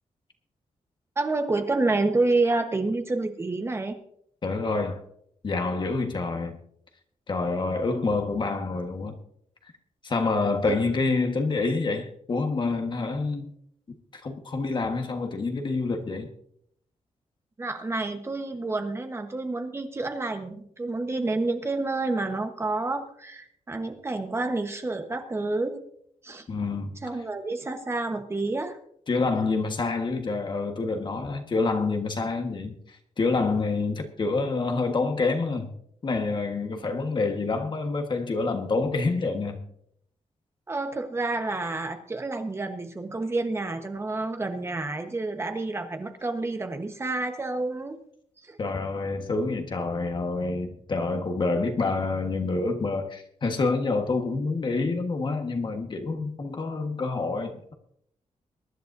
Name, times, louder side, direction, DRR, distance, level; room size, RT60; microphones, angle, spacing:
voice 1, 1.2-4.0 7.9-8.0 10.7-10.8 17.6-25.8 26.2-26.5 27.0-28.8 40.7-48.0 48.4-48.6, right 2 dB, 20° right, 6 dB, 1.2 m, -29 dB
voice 2, 4.4-5.0 5.4-6.6 7.3-9.1 10.0-13.5 14.1-16.3 26.5-26.9 29.1-35.7 36.0-39.6 48.6-57.7, left 3 dB, 40° left, 4 dB, 1.5 m, -27 dB
22.5 x 11.0 x 2.7 m, 0.68 s
wide cardioid pair, 175°, 13 cm